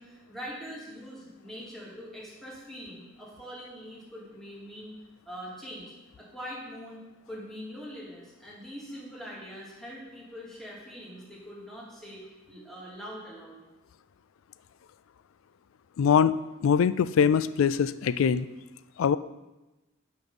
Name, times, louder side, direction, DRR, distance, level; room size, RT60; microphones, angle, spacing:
voice 1, 0.0-4.9 5.3-7.0 7.3-13.6, equal, ahead, -6 dB, 2.3 m, -43 dB
voice 2, 16.0-18.5 19.0-19.2, left 7 dB, 75° left, 15 dB, 0.3 m, -23 dB
9.1 x 5.5 x 5.5 m, 1.0 s
head